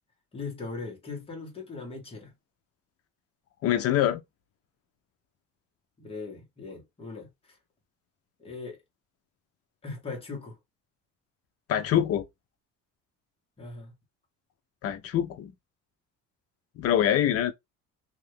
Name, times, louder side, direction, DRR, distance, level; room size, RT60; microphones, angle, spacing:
voice 1, 0.3-2.3 6.0-7.6 8.4-8.8 9.8-10.6 13.6-13.9, left 4 dB, 20° left, 1.0 m, -39 dB
voice 2, 3.6-4.2 11.7-12.2 14.8-15.5 16.8-17.5, left 11 dB, 50° left, 0.5 m, -24 dB
2.8 x 2.5 x 3.1 m
cardioid pair, 175°, 31 cm